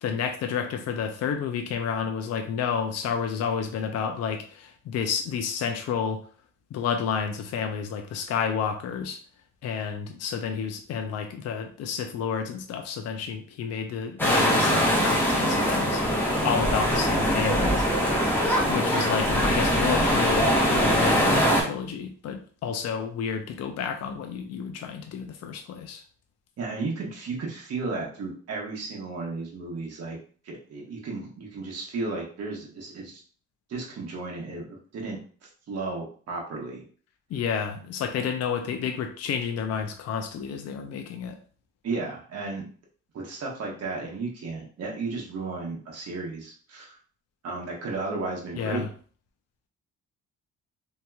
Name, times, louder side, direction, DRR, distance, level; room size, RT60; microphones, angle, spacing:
voice 1, 0.0-6.2 6.7-9.2 9.6-16.0 16.4-17.8 18.7-26.0 37.3-41.4 48.5-48.9, left 7 dB, 55° left, 5 dB, 0.5 m, -30 dB
sound 1, 14.2-21.6, equal, 5° left, 0.9 m, -22 dB
voice 2, 26.6-30.2 30.4-33.2 33.7-36.8 41.8-42.7 43.1-47.0 47.4-48.8, right 3 dB, 55° right, -2 dB, 1.0 m, -34 dB
2.8 x 2.8 x 2.3 m, 0.43 s
cardioid pair, 90°, 30 cm